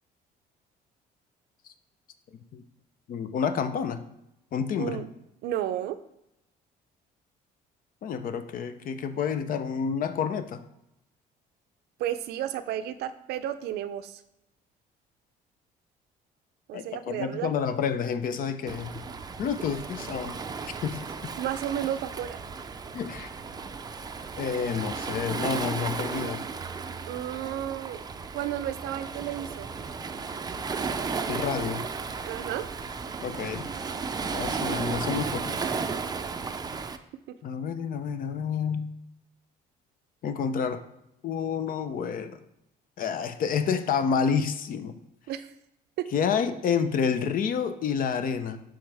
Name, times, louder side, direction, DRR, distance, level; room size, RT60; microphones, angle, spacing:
voice 1, 2.3-2.6 3.1-4.0 4.5-5.0 8.0-10.6 16.7-19.0 19.4-20.4 20.8-21.0 22.9-23.3 24.4-26.4 31.3-31.9 33.2-33.7 34.3-35.6 37.4-38.9 40.2-40.8 41.2-42.4 43.0-45.0 46.1-48.6, left 6 dB, 55° left, 10 dB, 0.7 m, -29 dB
voice 2, 5.4-6.0 12.0-14.2 16.7-17.5 21.4-22.4 27.1-28.0 28.3-29.7 32.2-32.7 34.7-34.8 37.3-37.4 45.3-45.5 46.0-46.1, right 11 dB, 80° right, 12 dB, 0.5 m, -32 dB
Waves surf, 18.7-37.0, right 5 dB, 25° right, 0.5 m, -34 dB
11.5 x 3.8 x 3.4 m, 0.83 s
cardioid pair, 110°, 17 cm